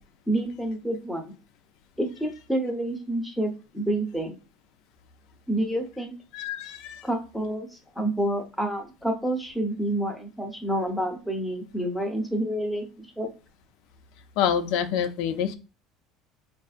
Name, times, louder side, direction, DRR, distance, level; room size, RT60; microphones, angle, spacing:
voice 1, 0.3-1.3 2.0-4.3 5.5-6.1 7.0-13.3, right 1 dB, ahead, 2 dB, 0.8 m, -28 dB
voice 2, 6.3-7.1 14.4-15.5, left 8 dB, 65° left, 9 dB, 0.5 m, -27 dB
5.5 x 2.6 x 2.4 m, 0.31 s
cardioid pair, 150°, 0 cm